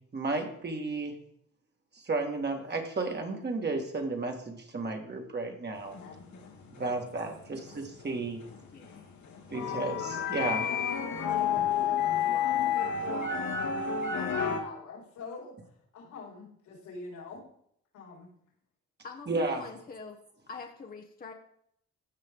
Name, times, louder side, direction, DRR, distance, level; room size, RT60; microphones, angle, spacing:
voice 1, 0.1-1.1 2.0-5.9 6.8-8.4 9.5-10.6 19.3-19.6, right 3 dB, 35° right, 3 dB, 1.9 m, -33 dB
voice 2, 5.8-6.4 10.6-15.6 15.9-17.4 17.9-18.3, left 4 dB, 85° left, -3 dB, 4.7 m, -45 dB
sound 1, 5.8-14.6, left 7 dB, 70° left, 1.9 m, -31 dB
voice 3, 8.7-9.1 19.0-20.2 20.5-21.3, left 4 dB, 30° left, 2 dB, 1.0 m, -44 dB
15.0 x 5.5 x 3.7 m, 0.69 s
cardioid pair, 90°, 30 cm